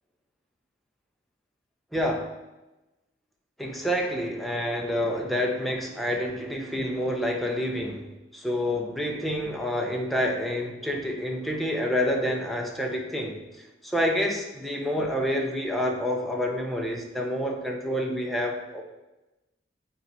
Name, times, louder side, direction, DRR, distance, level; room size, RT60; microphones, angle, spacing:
voice 1, 1.9-2.3 3.6-8.1 8.3-13.4 13.8-18.8, equal, ahead, 0 dB, 0.8 m, -28 dB
9.0 x 4.0 x 4.7 m, 1.0 s
head